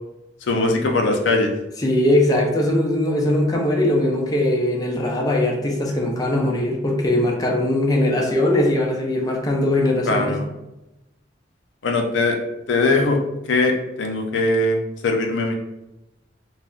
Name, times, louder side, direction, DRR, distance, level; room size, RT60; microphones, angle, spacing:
voice 1, 0.5-1.5 10.1-10.5 11.8-12.4 12.7-13.2 13.5-14.8 15.0-15.5, left 2 dB, 80° left, 3 dB, 0.5 m, -20 dB
voice 2, 1.8-10.4, left 1 dB, 20° left, 0 dB, 0.4 m, -20 dB
2.3 x 2.0 x 3.6 m, 0.93 s
head